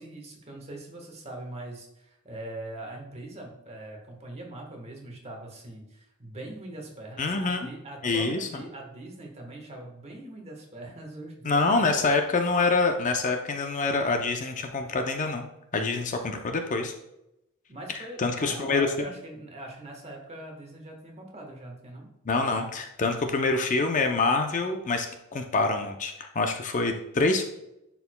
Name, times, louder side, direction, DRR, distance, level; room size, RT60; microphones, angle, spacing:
voice 1, 0.0-12.1 17.7-22.1, right 1 dB, 30° right, 1 dB, 1.3 m, -42 dB
voice 2, 7.2-7.7 8.0-8.5 11.4-15.5 15.7-16.9 17.9-18.9 22.3-27.4, left 3 dB, 35° left, 5 dB, 0.5 m, -26 dB
10.5 x 4.6 x 2.2 m, 0.87 s
head